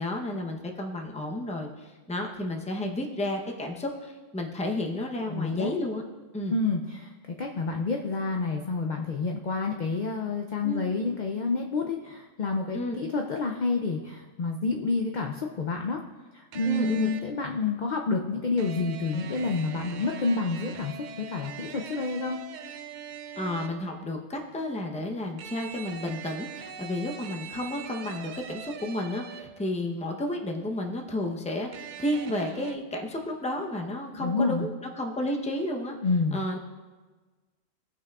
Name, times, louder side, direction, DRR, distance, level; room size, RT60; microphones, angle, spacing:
voice 1, 0.0-6.0 6.3-6.6 10.6-10.9 12.7-12.9 16.6-17.1 23.4-36.0 36.3-36.6, left 1 dB, 5° left, 2 dB, 0.5 m, -32 dB
voice 2, 5.3-5.7 6.5-7.1 7.4-16.0 16.3-22.4 34.1-34.7 36.0-36.4, left 3 dB, 60° left, 2 dB, 0.5 m, -29 dB
sound 1, 16.5-17.4 18.6-23.9 25.4-29.7 31.7-32.8, right 7 dB, 85° right, 0.4 m, -42 dB
17.5 x 5.9 x 2.4 m, 1.3 s
omnidirectional pair, 1.4 m